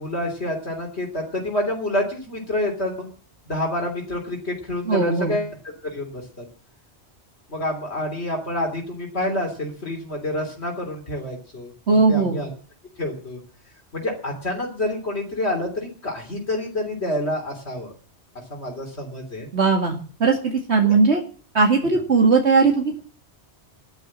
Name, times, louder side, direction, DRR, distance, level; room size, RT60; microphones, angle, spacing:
voice 1, 0.0-3.1 3.5-5.6 5.8-6.5 7.5-11.7 12.1-12.5 13.0-13.4 13.9-17.9 18.5-19.5 20.8-21.0, left 1 dB, 70° left, 0 dB, 3.7 m, -28 dB
voice 2, 4.9-5.4 11.9-12.4 19.5-21.2 21.5-23.0, right 4 dB, 70° right, 2 dB, 2.6 m, -19 dB
15.0 x 12.0 x 7.5 m, 0.40 s
omnidirectional pair, 1.2 m